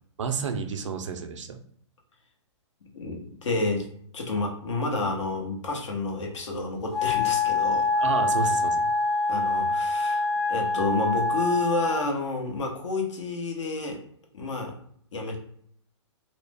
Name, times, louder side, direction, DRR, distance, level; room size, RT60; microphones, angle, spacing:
voice 1, 0.2-1.6 8.0-8.8, right 5 dB, 80° right, 7 dB, 0.5 m, -30 dB
voice 2, 2.8-3.9 4.1-8.0 9.3-14.0 14.3-14.7 15.1-15.4, left 3 dB, 75° left, 2 dB, 0.8 m, -30 dB
Wind instrument woodwind instrument, 6.9-12.1, left 3 dB, 5° left, 0.4 m, -25 dB
2.4 x 2.0 x 3.3 m, 0.64 s
hypercardioid pair, 140°, 15 cm